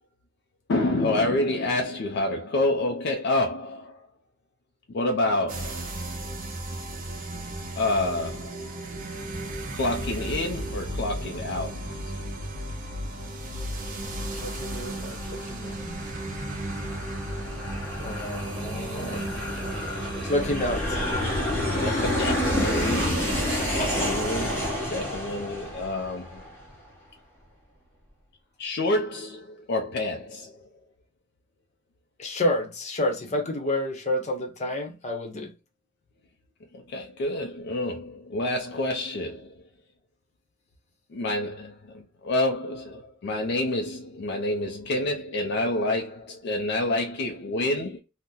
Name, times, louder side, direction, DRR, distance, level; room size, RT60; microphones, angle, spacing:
voice 1, 0.7-4.1 4.9-5.9 7.8-8.7 9.7-11.9 18.8-19.0 19.9-20.3 21.3-26.4 28.6-30.6 36.7-39.5 41.1-48.0, left 2 dB, 55° left, 0.4 m, -28 dB
sound 1, 5.5-24.7, right 1 dB, 45° right, 0.6 m, -35 dB
Aircraft, 13.5-26.7, left 1 dB, 10° left, 1.2 m, -30 dB
voice 2, 14.3-16.0 17.9-19.4 20.2-21.0 23.6-24.1 32.2-35.5, left 1 dB, 35° left, 0.8 m, -30 dB
2.8 x 2.1 x 3.6 m
head